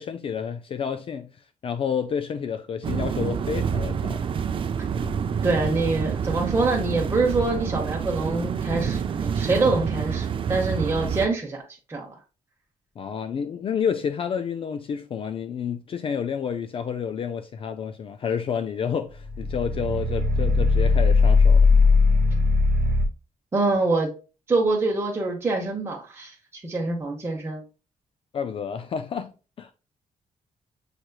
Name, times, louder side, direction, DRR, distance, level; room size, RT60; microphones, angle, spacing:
voice 1, 0.0-1.3 1.6-4.2 13.0-21.7 28.3-29.3 29.6-29.7, left 7 dB, 40° left, 0.4 m, -29 dB
sound 1, 2.8-11.3, right 7 dB, 40° right, 0.4 m, -27 dB
voice 2, 5.4-11.6 11.9-12.2 23.5-24.1 24.5-27.6, right 3 dB, 20° right, 0.9 m, -25 dB
sound 2, 19.2-23.1, left 4 dB, 85° right, 0.7 m, -19 dB
6.6 x 3.0 x 2.2 m
cardioid pair, 140°, 14 cm